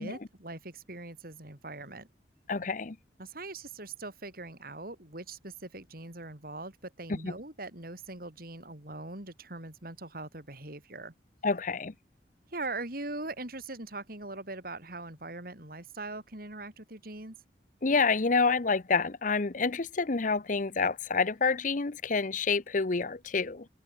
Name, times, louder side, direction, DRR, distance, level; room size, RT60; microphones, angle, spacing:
voice 1, 0.0-2.1 3.2-11.1 12.5-17.4, right 2 dB, 55° right, 4.7 m, -41 dB
voice 2, 2.5-3.0 7.1-7.3 11.4-11.9 17.8-23.7, left 4 dB, 45° left, 0.8 m, -28 dB
open air
head